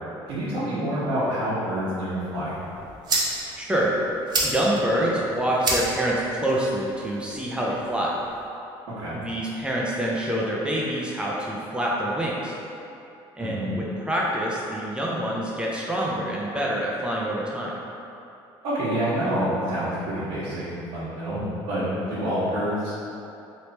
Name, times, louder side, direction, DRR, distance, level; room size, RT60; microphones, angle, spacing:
voice 1, 0.3-2.5 9.0-9.2 13.4-13.7 18.6-21.8 22.1-22.9, equal, 75° right, -13 dB, 1.2 m, -27 dB
sound 1, 2.4-8.4, right 2 dB, 40° right, 0.9 m, -31 dB
voice 2, 3.6-4.0 4.4-8.2 9.1-12.6 13.4-17.8, right 1 dB, 10° right, -4 dB, 0.6 m, -26 dB
3.4 x 3.0 x 4.1 m, 2.8 s
cardioid pair, 120°, 11 cm